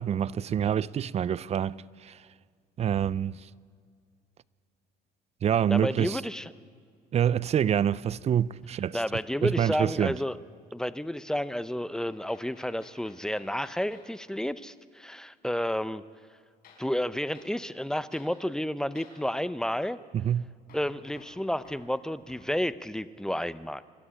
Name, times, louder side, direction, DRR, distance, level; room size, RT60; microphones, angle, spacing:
voice 1, 0.0-2.2 2.8-3.4 5.4-6.2 7.1-9.0 9.4-10.2 20.1-20.5, right 9 dB, 40° right, 0.5 m, -26 dB
voice 2, 5.7-6.5 8.9-10.4 10.7-16.0 16.8-20.0 20.7-23.8, left 1 dB, 5° left, 0.6 m, -31 dB
Hammer, 8.1-9.5 9.8-10.1 12.0-14.1 16.6-16.9 17.3-17.6 18.1-18.4 19.0-19.2 20.7-22.5, left 4 dB, 60° left, 6.2 m, -56 dB
26.0 x 12.5 x 9.9 m
cardioid pair, 110°, 17 cm